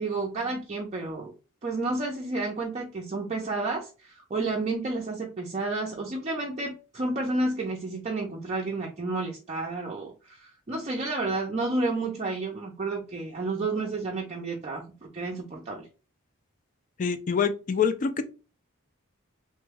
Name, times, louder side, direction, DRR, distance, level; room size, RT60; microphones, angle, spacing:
voice 1, 0.0-1.3 1.6-15.9, right 3 dB, 30° right, -1 dB, 0.4 m, -31 dB
voice 2, 17.0-18.2, left 6 dB, 35° left, 11 dB, 0.3 m, -25 dB
3.1 x 2.2 x 3.3 m, 0.33 s
head